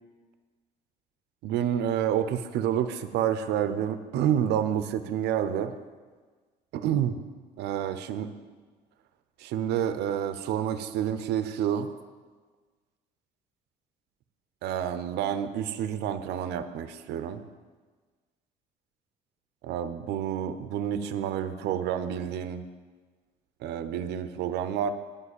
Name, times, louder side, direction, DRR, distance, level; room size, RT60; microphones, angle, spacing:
voice 1, 1.4-5.7 6.7-7.2 7.6-8.3 9.4-11.9 14.6-17.4 19.6-22.6 23.6-24.9, right 9 dB, 80° right, 11 dB, 0.7 m, -29 dB
9.8 x 5.4 x 8.3 m, 1.4 s
cardioid pair, 110°, 17 cm